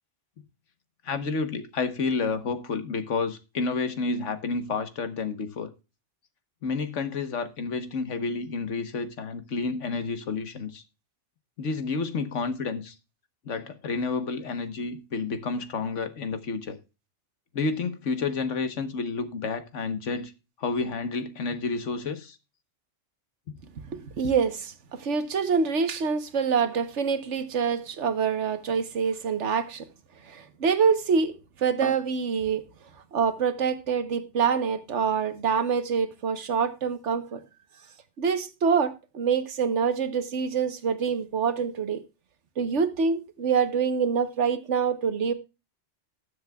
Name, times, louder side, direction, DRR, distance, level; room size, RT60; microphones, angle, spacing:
voice 1, 1.0-5.7 6.6-10.8 11.6-13.0 13.4-16.8 17.5-20.3 20.6-22.4 23.5-23.6, left 4 dB, 80° left, 1.5 m, -30 dB
voice 2, 23.9-29.8 30.2-32.7 33.1-37.4 38.2-42.0 42.6-45.3, right 6 dB, 75° right, 1.4 m, -26 dB
19.5 x 7.2 x 2.3 m
omnidirectional pair, 1.2 m